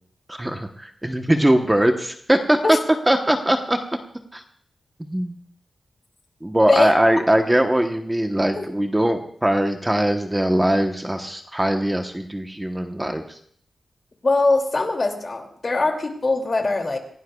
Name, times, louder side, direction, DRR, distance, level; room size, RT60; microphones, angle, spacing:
voice 1, 0.3-2.8 3.1-3.8 4.3-4.4 5.0-5.3 6.4-13.4, right 1 dB, 10° right, 4 dB, 1.0 m, -21 dB
voice 2, 14.2-17.0, left 3 dB, 40° left, 3 dB, 2.5 m, -21 dB
27.0 x 16.5 x 2.3 m, 0.63 s
wide cardioid pair, 120°, 0 cm